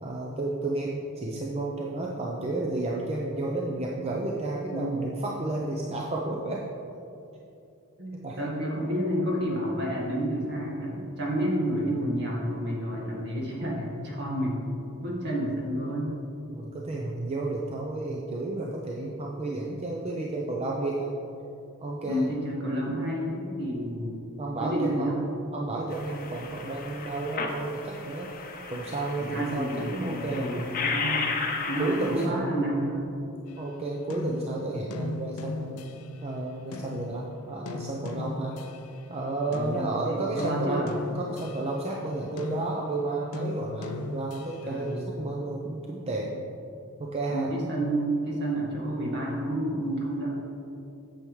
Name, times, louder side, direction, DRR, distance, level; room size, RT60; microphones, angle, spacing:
voice 1, 0.0-6.7 8.1-8.4 16.5-21.1 21.8-22.3 24.4-30.6 31.8-32.6 33.6-35.8 36.2-38.6 39.1-46.4 47.0-47.5, right 2 dB, 30° right, -2 dB, 0.5 m, -32 dB
voice 2, 4.7-5.1 8.0-14.7 15.0-16.1 22.0-24.2 24.6-25.2 29.2-31.3 31.7-33.1 39.5-40.9 44.6-45.0 47.3-50.3, right 1 dB, 50° right, -3 dB, 1.7 m, -30 dB
sound 1, 25.9-32.3, left 4 dB, 40° left, 0.7 m, -34 dB
sound 2, 33.5-36.3 36.7-39.1 39.5-44.8, left 2 dB, 80° left, 0.5 m, -38 dB
8.9 x 7.0 x 3.2 m, 2.7 s
head